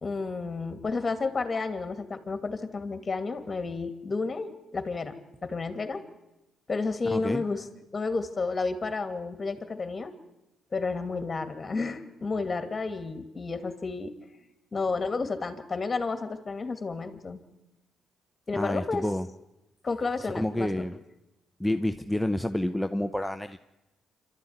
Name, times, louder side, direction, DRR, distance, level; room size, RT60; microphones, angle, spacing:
voice 1, 0.0-5.1 5.4-6.0 6.7-7.7 7.9-10.1 10.7-14.1 14.7-17.4 18.5-19.1 19.8-20.9, left 4 dB, 30° left, 9 dB, 2.4 m, -31 dB
voice 2, 7.0-7.4 18.5-19.3 20.3-21.0 21.6-23.6, left 1 dB, 5° left, 7 dB, 0.8 m, -29 dB
26.5 x 13.0 x 9.6 m, 0.98 s
cardioid pair, 90°, 0 cm